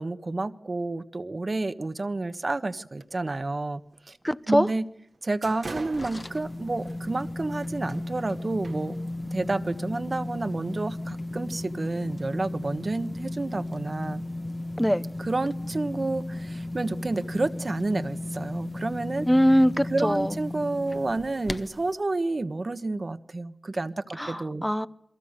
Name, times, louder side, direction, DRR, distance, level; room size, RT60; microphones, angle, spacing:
voice 1, 0.0-3.8 4.1-4.2 4.5-4.9 5.2-9.0 9.3-14.2 15.2-19.3 19.8-24.6, right 2 dB, 50° right, 1.3 m, -30 dB
sound 1, 3.0-3.4 3.8-4.0 4.6-4.7 5.1-9.3, right 3 dB, 75° right, 2.0 m, -44 dB
voice 2, 4.2-4.7 14.8-15.0 19.3-20.4 24.2-24.9, equal, 5° left, 0.9 m, -22 dB
sound 2, 5.6-21.9, left 1 dB, 35° left, 1.4 m, -35 dB
29.0 x 22.5 x 6.7 m
wide cardioid pair, 60°, 0 cm